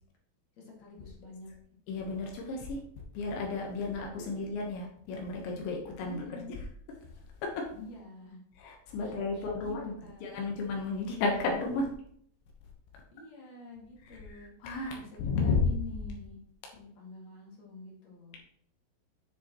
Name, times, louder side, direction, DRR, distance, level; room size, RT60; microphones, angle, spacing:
voice 1, 0.6-1.5 1.9-2.3 3.8-4.6 6.1-6.5 7.7-8.4 9.0-10.4 13.1-14.5 14.9-16.4 16.7-18.4, left 3 dB, 45° left, -3 dB, 2.5 m, -48 dB
voice 2, 1.9-2.8 3.1-6.2 7.4-7.7 8.6-9.9 10.2-11.9 14.3-15.6, left 3 dB, 75° left, 0 dB, 3.3 m, -33 dB
9.7 x 7.0 x 3.1 m, 0.65 s
omnidirectional pair, 5.7 m